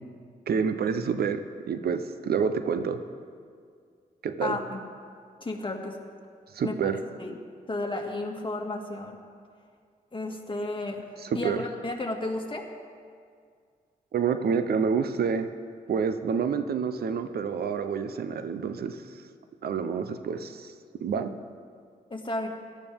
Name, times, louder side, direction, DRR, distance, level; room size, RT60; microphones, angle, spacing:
voice 1, 0.5-3.0 4.2-4.6 6.5-7.0 11.2-11.6 14.1-15.5 15.9-19.2 19.6-20.7 21.0-21.3, right 6 dB, 70° right, 10 dB, 0.8 m, -28 dB
voice 2, 4.4-4.8 5.4-6.0 6.6-6.9 7.2-7.4 7.7-9.2 10.1-12.6 22.1-22.5, left 2 dB, 30° left, 1 dB, 2.1 m, -33 dB
17.0 x 12.5 x 3.6 m, 2.1 s
supercardioid pair, 50°, 17 cm